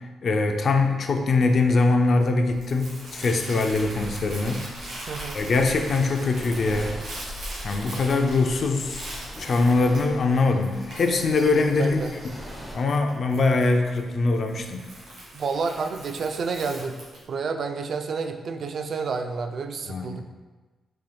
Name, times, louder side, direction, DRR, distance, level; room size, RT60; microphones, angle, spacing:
voice 1, 0.2-4.7 5.3-7.0 7.6-9.0 9.4-12.0 12.7-14.8 19.9-20.2, left 3 dB, 55° left, 5 dB, 0.4 m, -22 dB
Crumpling crinkling, 0.8-17.2, right 1 dB, 80° right, 1.4 m, -42 dB
sound 1, 3.7-12.8, equal, 10° right, 0.8 m, -41 dB
voice 2, 5.1-5.4 11.8-12.1 15.3-17.0 17.3-20.2, right 4 dB, 60° right, 7 dB, 0.3 m, -29 dB
4.2 x 3.2 x 2.2 m, 1.3 s
cardioid pair, 70°, 0 cm